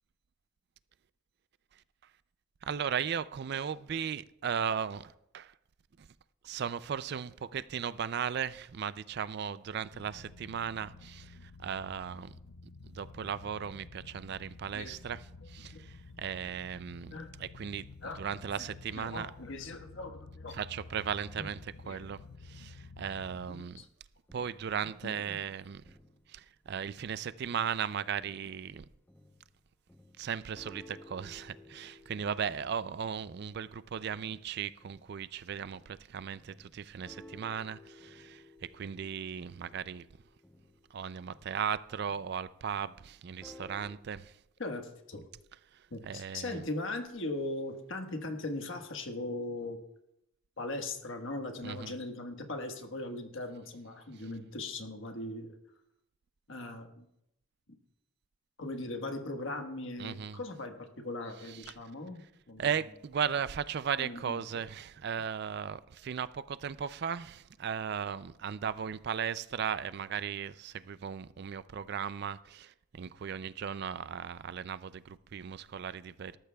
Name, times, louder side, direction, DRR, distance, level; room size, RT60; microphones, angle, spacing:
voice 1, 2.6-5.5 6.4-12.4 12.9-17.9 18.2-19.3 20.5-23.8 24.3-25.8 26.3-28.8 30.2-40.1 40.9-44.3 46.0-46.6 51.6-51.9 60.0-60.4 61.4-61.8 62.6-76.4, right 7 dB, 50° right, 0.3 m, -37 dB
sound 1, 9.9-23.5, left 3 dB, 90° left, 0.6 m, -51 dB
voice 2, 19.0-20.6 21.4-21.5 21.8-22.0 23.5-23.9 25.0-25.4 44.6-45.2 45.9-49.8 50.6-55.5 56.5-57.0 58.6-62.7 64.0-64.4, left 2 dB, 65° left, 1.4 m, -39 dB
sound 2, 24.3-27.2 27.5-36.1 36.4-44.0, left 2 dB, 10° left, 0.7 m, -57 dB
19.0 x 13.5 x 2.3 m
head